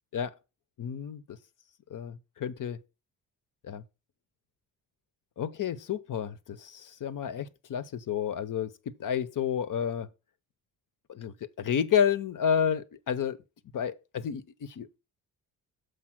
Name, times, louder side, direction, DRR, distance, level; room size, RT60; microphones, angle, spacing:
voice 1, 0.8-1.4 1.9-2.8 3.6-3.8 5.4-10.1 11.1-13.4 13.7-15.0, left 8 dB, 55° left, 0.8 m, -30 dB
6.4 x 5.3 x 6.0 m
supercardioid pair, 60°, 39 cm